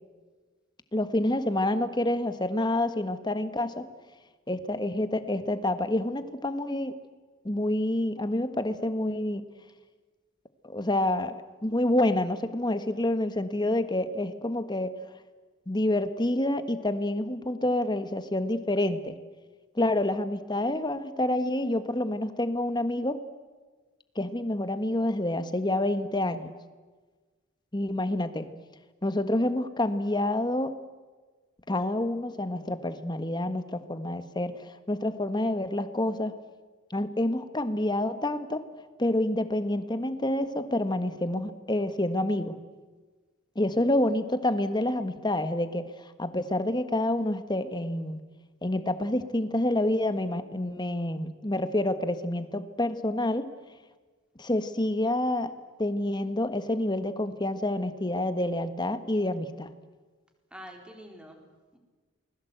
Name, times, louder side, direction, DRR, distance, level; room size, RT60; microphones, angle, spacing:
voice 1, 0.9-3.9 4.5-6.9 7.4-9.4 10.6-14.9 15.7-19.1 19.7-23.2 24.1-26.5 27.7-28.5 29.0-30.7 31.7-36.3 36.9-38.6 39.0-42.6 43.5-45.9 46.2-48.2 48.6-53.5 54.4-55.5 55.8-59.7, left 1 dB, 20° left, 10 dB, 1.4 m, -28 dB
voice 2, 60.5-61.8, equal, 5° right, 2 dB, 4.0 m, -47 dB
28.5 x 20.5 x 8.1 m, 1.3 s
head